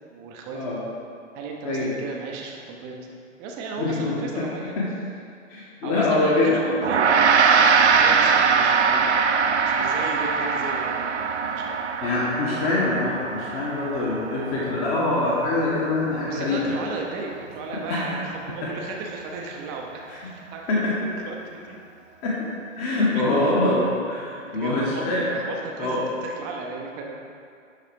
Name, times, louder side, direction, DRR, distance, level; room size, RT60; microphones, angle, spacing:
voice 1, 0.0-0.8 1.3-4.8 5.8-11.3 11.5-11.9 12.2-12.6 16.1-21.8 23.1-23.9 24.4-27.1, right 3 dB, 15° right, 0 dB, 0.6 m, -35 dB
voice 2, 3.8-4.4 4.8-4.9 5.5-6.6 12.0-16.7 17.9-18.0 20.1-20.2 20.7-20.9 22.2-22.4 22.7-23.8 24.1-25.3 25.8-26.0, left 2 dB, 30° left, -5 dB, 1.2 m, -24 dB
Gong, 6.8-16.4, right 5 dB, 60° right, 0.7 m, -22 dB
11.0 x 4.0 x 4.6 m, 2.3 s
figure-of-eight pair, 125°, 39 cm